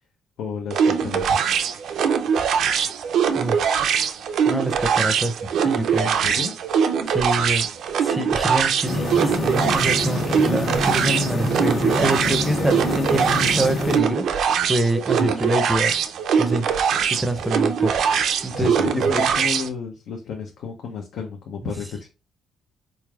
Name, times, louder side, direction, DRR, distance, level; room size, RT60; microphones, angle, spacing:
voice 1, 0.4-1.5 6.0-6.5 18.5-22.1, left 5 dB, 75° left, 0.6 m, -31 dB
sound 1, 0.7-19.7, right 7 dB, 70° right, 0.4 m, -22 dB
voice 2, 3.3-3.7 4.5-5.4 5.6-6.1 7.1-7.7 8.0-14.4 14.7-16.0 16.4-16.8 17.2-18.0 18.4-19.4, right 1 dB, 10° right, 0.5 m, -26 dB
sound 2, 8.8-14.0, left 2 dB, 60° left, 1.3 m, -26 dB
3.9 x 3.2 x 2.3 m
cardioid pair, 85°, 0 cm